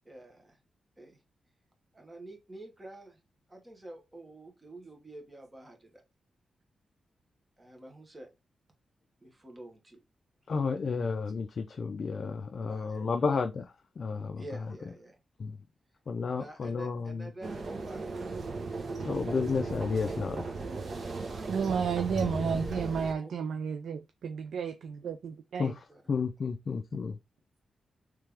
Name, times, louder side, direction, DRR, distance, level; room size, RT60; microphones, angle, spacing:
voice 1, 0.0-0.6 1.0-1.2 1.9-3.2 3.5-6.0 7.6-8.3 9.2-10.0 12.7-13.1 14.4-15.2 16.3-18.2 21.3-21.6 23.0-23.3 25.9-26.0, right 1 dB, 20° right, 1.2 m, -48 dB
voice 2, 10.5-14.4 15.4-15.6 16.1-17.3 19.0-20.5 22.3-22.4 25.6-25.7 26.1-27.2, left 5 dB, 50° left, 0.3 m, -32 dB
sound 1, 17.4-23.1, right 3 dB, 50° right, 1.0 m, -37 dB
voice 3, 21.5-25.7, right 6 dB, 80° right, 0.4 m, -32 dB
3.3 x 3.3 x 3.4 m
wide cardioid pair, 120°, 0 cm